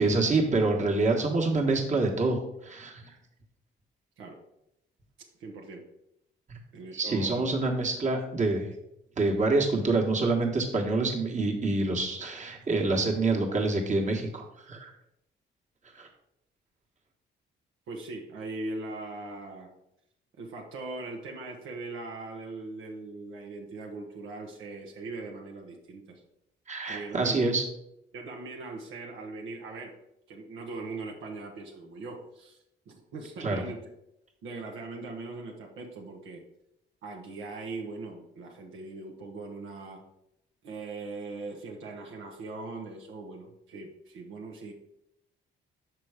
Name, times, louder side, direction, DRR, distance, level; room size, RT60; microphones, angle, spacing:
voice 1, 0.0-3.0 6.5-6.6 6.9-8.7 9.2-14.9 16.0-16.1 26.7-27.6 33.4-33.6, right 3 dB, 35° right, 0 dB, 1.5 m, -26 dB
voice 2, 5.4-5.8 6.7-7.6 17.9-19.7 20.4-26.2 26.9-27.6 28.1-30.0 30.3-32.6 32.9-33.9 34.4-36.4 37.0-40.0 40.6-44.7, right 3 dB, 80° right, 1 dB, 1.1 m, -40 dB
6.0 x 4.6 x 5.0 m, 0.82 s
cardioid pair, 90°, 20 cm